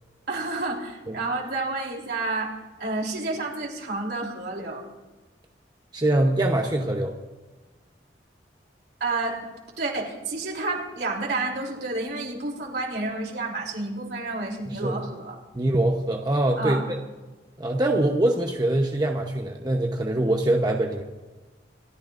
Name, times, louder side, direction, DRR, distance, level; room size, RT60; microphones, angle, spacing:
voice 1, 0.3-4.8 9.0-9.5 9.8-15.4 16.6-16.8, right 3 dB, 65° right, -1 dB, 3.4 m, -30 dB
voice 2, 5.9-7.2 14.7-15.0 15.5-17.0 17.6-21.0, right 1 dB, 25° right, 1 dB, 0.9 m, -23 dB
28.5 x 14.0 x 2.6 m, 1.2 s
head